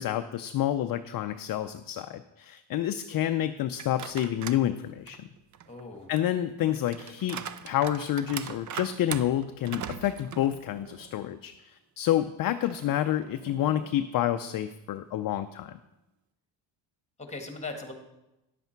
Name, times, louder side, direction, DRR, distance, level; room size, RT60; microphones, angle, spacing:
voice 1, 0.0-5.3 6.1-15.8, left 12 dB, 50° left, 9 dB, 0.5 m, -29 dB
sound 1, 3.8-4.7 5.1-11.2 11.5-11.6 12.6-14.1, right 9 dB, 40° right, 0.5 m, -41 dB
voice 2, 5.6-6.1 17.2-17.9, left 3 dB, 15° left, 4 dB, 1.6 m, -39 dB
10.5 x 8.1 x 4.5 m, 0.95 s
cardioid pair, 110°, 47 cm